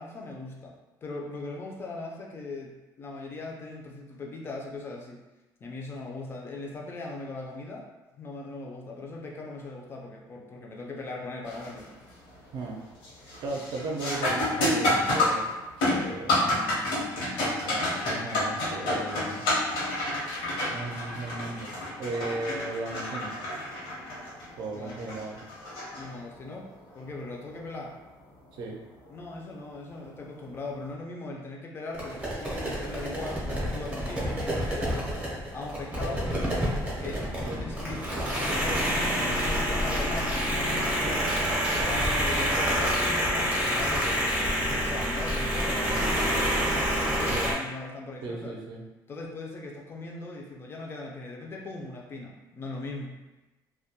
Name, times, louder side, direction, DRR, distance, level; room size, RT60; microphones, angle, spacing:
voice 1, 0.0-5.2 5.6-7.9 8.2-11.9 24.7-25.0 25.9-28.0 29.1-36.2 37.0-41.4 41.7-46.5 46.9-48.6 49.1-53.2, left 2 dB, 30° left, -1 dB, 0.3 m, -39 dB
sound 1, 11.5-11.8 12.3-12.7 13.0-26.5 29.1-29.2 30.0-30.2, left 1 dB, 85° left, 0.9 m, -29 dB
voice 2, 13.2-15.5 15.8-16.6 17.6-19.4 20.7-21.7 22.0-23.4 24.6-25.4 28.5-28.8 37.4-37.6 47.3-47.5 48.2-48.8, right 3 dB, 60° right, 0 dB, 0.5 m, -36 dB
sound 2, 31.9-47.5, equal, 15° right, 0.6 m, -28 dB
2.2 x 2.1 x 2.7 m, 1.1 s
cardioid pair, 145°, 8 cm